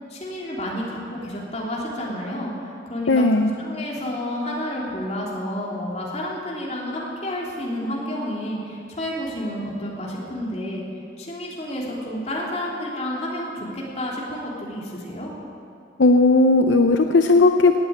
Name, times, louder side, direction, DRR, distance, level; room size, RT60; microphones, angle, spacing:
voice 1, 0.1-3.2 3.6-10.9 11.2-15.3, left 1 dB, 35° left, -4 dB, 3.2 m, -30 dB
voice 2, 3.1-3.5 16.0-17.8, left 3 dB, 75° left, 6 dB, 0.6 m, -16 dB
18.0 x 8.9 x 8.8 m, 2.5 s
head